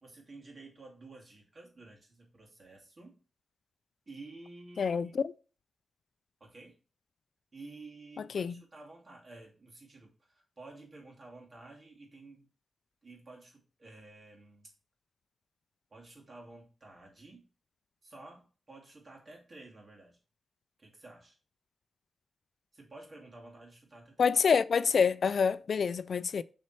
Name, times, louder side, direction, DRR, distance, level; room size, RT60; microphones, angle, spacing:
voice 1, 0.0-3.2 4.1-5.1 6.4-6.8 7.5-12.5 13.0-14.7 15.9-17.5 18.0-20.2 20.8-21.4 22.7-24.3, right 2 dB, 45° right, 2.7 m, -52 dB
voice 2, 4.8-5.3 8.3-8.5 24.2-26.4, left 6 dB, 70° left, 0.3 m, -27 dB
7.4 x 4.2 x 4.4 m
cardioid pair, 80°, 0 cm